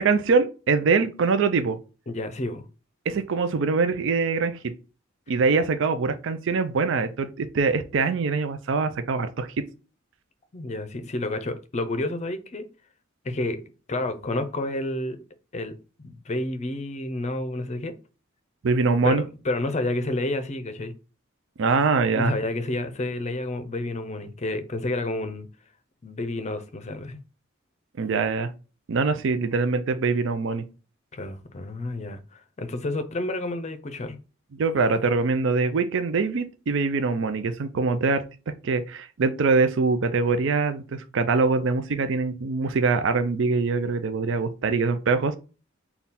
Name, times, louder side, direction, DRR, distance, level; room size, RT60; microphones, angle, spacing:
voice 1, 0.0-1.8 3.1-4.7 5.3-9.5 18.6-19.2 21.6-22.3 28.0-28.5 28.9-30.6 34.5-38.2 38.6-45.4, right 4 dB, 65° right, 0.4 m, -23 dB
voice 2, 2.1-2.7 10.5-12.7 13.2-13.6 13.9-15.2 15.5-15.7 16.0-17.9 19.0-20.9 22.1-25.5 26.0-27.2 31.1-34.2, left 2 dB, 35° left, 0.5 m, -30 dB
3.7 x 2.3 x 4.1 m
head